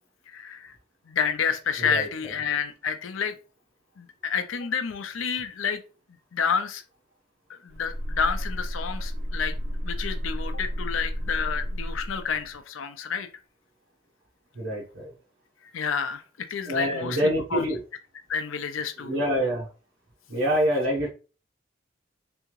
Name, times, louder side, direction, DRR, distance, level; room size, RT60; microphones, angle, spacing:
voice 1, 0.3-0.7 1.1-3.4 4.0-5.8 6.3-6.8 7.6-9.6 9.8-13.3 15.7-17.7 18.3-19.1, left 6 dB, 80° left, 9 dB, 0.5 m, -29 dB
sound 1, 7.7-12.6, equal, 55° right, 1.9 m, -32 dB
voice 2, 14.5-15.1 16.6-17.8 19.0-19.7 20.3-21.1, equal, 75° right, -5 dB, 1.1 m, -26 dB
3.6 x 3.4 x 3.1 m, 0.35 s
head